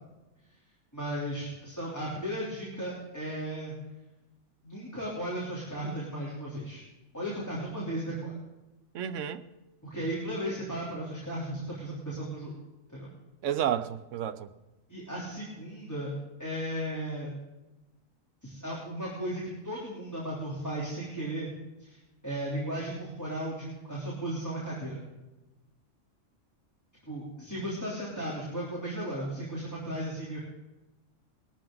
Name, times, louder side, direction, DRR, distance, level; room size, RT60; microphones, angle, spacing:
voice 1, 0.9-3.7 4.6-6.8 7.1-8.3 9.8-12.5 12.9-13.1 14.9-16.1 16.4-17.3 18.4-21.5 21.8-22.0 22.2-25.0 27.1-30.4, right 1 dB, 15° left, -7 dB, 3.3 m, -35 dB
voice 2, 8.9-9.4 13.4-14.5, right 10 dB, 75° right, 12 dB, 1.0 m, -31 dB
19.5 x 13.5 x 3.9 m, 1.0 s
omnidirectional pair, 1.3 m